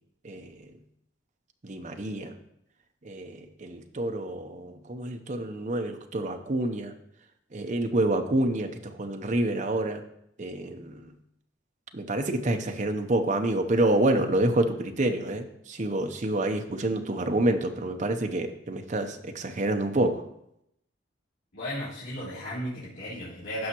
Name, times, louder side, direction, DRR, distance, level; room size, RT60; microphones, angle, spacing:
voice 1, 0.2-0.7 1.6-2.3 3.0-6.9 7.5-10.0 10.4-11.1 11.9-20.1, right 1 dB, 40° right, 5 dB, 0.8 m, -28 dB
voice 2, 21.5-23.7, equal, 85° left, -13 dB, 3.8 m, -35 dB
16.0 x 5.6 x 3.0 m, 0.76 s
head